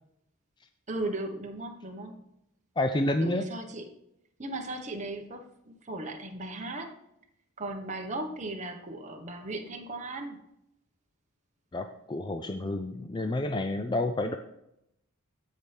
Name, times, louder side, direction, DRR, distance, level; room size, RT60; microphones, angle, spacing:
voice 1, 0.9-2.2 3.2-3.8 4.4-6.9 7.6-10.4, right 2 dB, 30° right, 3 dB, 1.3 m, -37 dB
voice 2, 2.8-3.4 11.7-14.4, left 1 dB, 20° left, 7 dB, 0.4 m, -29 dB
16.0 x 5.7 x 3.5 m, 0.81 s
head